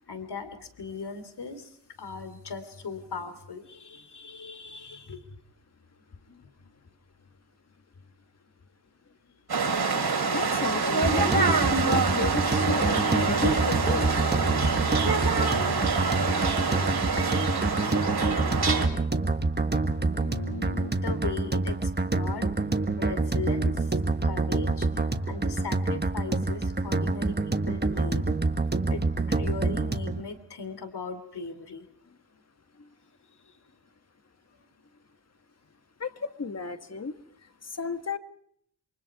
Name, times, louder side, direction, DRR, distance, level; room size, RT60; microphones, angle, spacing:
voice 1, 0.1-1.7 2.0-5.2 20.2-22.5 23.0-23.7 24.2-24.9 25.2-28.2 28.9-29.0 29.3-31.8, left 4 dB, 70° left, 10 dB, 3.0 m, -38 dB
sound 1, 9.5-18.9, right 4 dB, 60° right, 4.1 m, -26 dB
voice 2, 10.3-14.1 36.0-36.1 36.4-37.1 37.8-38.2, left 4 dB, 40° left, 10 dB, 1.6 m, -33 dB
sound 2, 11.0-30.2, right 3 dB, 25° right, 1.5 m, -27 dB
28.0 x 23.5 x 4.8 m, 0.66 s
cardioid pair, 75°, 42 cm